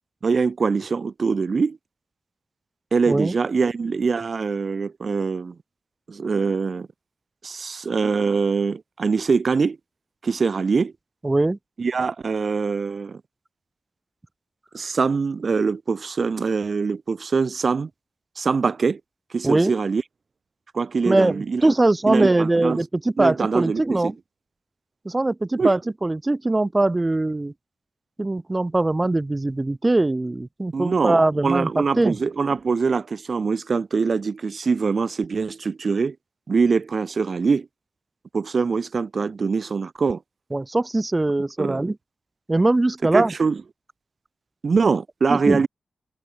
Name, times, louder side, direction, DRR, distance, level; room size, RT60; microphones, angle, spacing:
voice 1, 0.2-1.8 2.9-5.6 6.1-6.9 7.4-9.8 10.2-10.9 11.8-13.2 14.7-17.9 18.4-19.0 19.3-20.0 20.7-21.6 22.1-22.8 23.2-24.1 25.6-25.7 30.7-36.2 36.5-37.7 38.3-40.2 41.6-41.8 43.1-43.6 44.6-45.7, right 5 dB, 60° right, 0.3 m, -23 dB
voice 2, 11.2-11.6 19.4-19.7 21.0-24.1 25.0-27.5 28.2-32.2 40.5-42.0 42.5-43.3 45.3-45.6, right 2 dB, 25° right, 1.3 m, -21 dB
cardioid pair, 55°, 0 cm